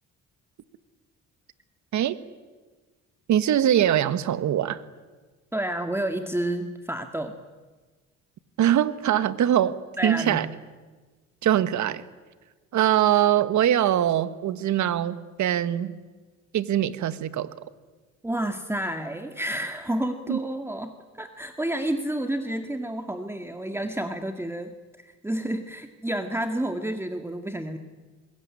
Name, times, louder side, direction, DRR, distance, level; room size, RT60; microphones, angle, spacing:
voice 1, 3.3-4.8 8.6-9.7 10.0-10.5 11.4-12.0 12.7-15.9 16.5-17.5 20.3-20.4, right 11 dB, 70° right, 14 dB, 1.5 m, -22 dB
voice 2, 5.5-7.3 10.0-10.5 18.2-27.8, right 1 dB, 10° right, 6 dB, 1.9 m, -30 dB
26.0 x 21.0 x 9.9 m, 1.3 s
cardioid pair, 90°, 30 cm